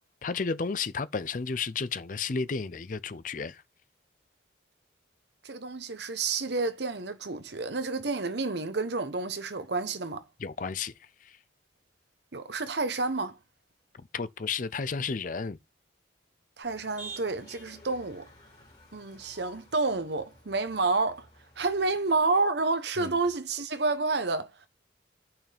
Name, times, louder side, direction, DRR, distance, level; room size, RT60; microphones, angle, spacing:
voice 1, 0.2-3.6 10.4-11.4 13.9-15.6 23.0-23.1, left 5 dB, 45° left, 0.5 m, -33 dB
voice 2, 5.4-10.2 12.3-13.4 16.6-18.3 18.9-21.3 21.6-24.5, right 3 dB, 60° right, 0.9 m, -29 dB
Motor vehicle (road), 16.6-22.2, right 2 dB, 25° left, 5.5 m, -50 dB
9.0 x 5.8 x 3.4 m
head